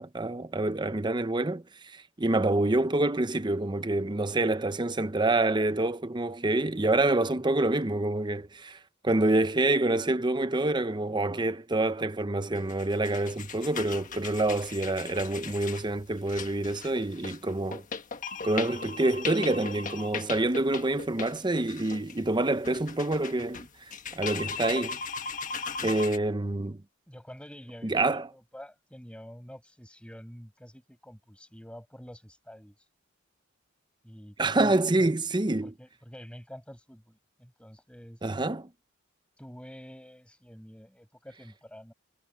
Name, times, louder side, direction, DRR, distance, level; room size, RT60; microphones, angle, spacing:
voice 1, 0.0-1.6 1.9-8.8 9.0-17.8 18.4-23.7 24.1-25.0 25.8-26.8 27.8-28.2 34.4-35.7 38.2-38.6, right 2 dB, 20° right, 0.8 m, -27 dB
sound 1, 12.6-26.2, left 5 dB, 40° left, 1.5 m, -38 dB
voice 2, 27.1-32.8 34.0-35.2 35.6-38.2 39.4-41.9, equal, 5° left, 5.9 m, -47 dB
head